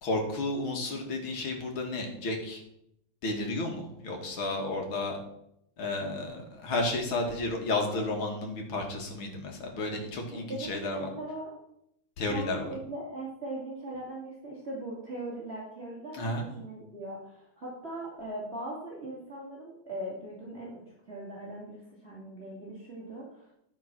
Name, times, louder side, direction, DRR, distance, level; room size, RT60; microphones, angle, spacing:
voice 1, 0.0-2.6 3.2-5.2 5.8-11.1 12.2-12.7 16.1-16.5, left 2 dB, 80° left, 2 dB, 2.7 m, -32 dB
voice 2, 10.3-11.5 12.3-20.8 21.1-23.5, right 1 dB, 30° right, -5 dB, 2.6 m, -40 dB
11.5 x 5.8 x 6.0 m, 0.78 s
omnidirectional pair, 2.2 m